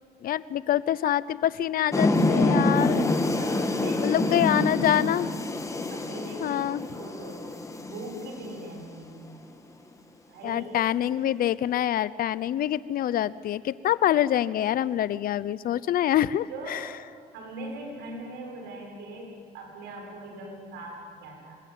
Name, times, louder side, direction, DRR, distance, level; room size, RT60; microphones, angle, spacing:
voice 1, 0.2-3.0 4.0-5.3 6.4-6.8 10.4-16.8, left 11 dB, 60° left, 18 dB, 0.8 m, -25 dB
sound 1, 1.9-8.9, left 2 dB, 20° left, 2.2 m, -26 dB
voice 2, 3.4-4.9 5.9-7.4 7.8-9.2 10.3-10.9 16.5-16.8 17.3-21.6, right 1 dB, 90° right, 1 dB, 6.8 m, -40 dB
26.5 x 20.5 x 9.3 m, 2.3 s
cardioid pair, 110°, 17 cm